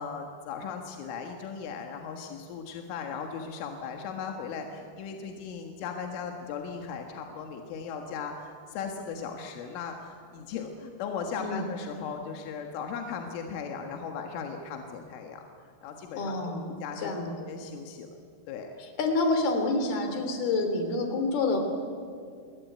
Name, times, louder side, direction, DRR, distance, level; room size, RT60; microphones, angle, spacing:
voice 1, 0.0-15.5 15.8-17.1 17.4-18.1 18.5-18.7, left 6 dB, 80° left, 3 dB, 4.1 m, -37 dB
voice 2, 16.2-17.3 19.0-21.6, left 3 dB, 55° left, 6 dB, 4.8 m, -28 dB
28.0 x 21.5 x 9.3 m, 2.3 s
omnidirectional pair, 5.6 m